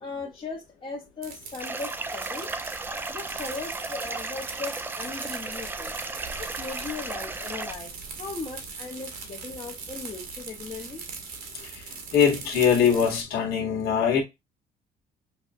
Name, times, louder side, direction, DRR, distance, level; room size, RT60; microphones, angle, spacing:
voice 1, 0.0-2.5 3.1-5.9 6.4-7.9 8.2-11.0, left 4 dB, 30° left, 0.9 m, -38 dB
sound 1, 1.2-13.2, right 5 dB, 60° right, 1.2 m, -40 dB
sound 2, 1.6-7.7, right 3 dB, 10° right, 0.4 m, -35 dB
voice 2, 12.1-14.2, left 7 dB, 65° left, 1.4 m, -22 dB
5.6 x 2.3 x 2.5 m
cardioid pair, 110°, 17 cm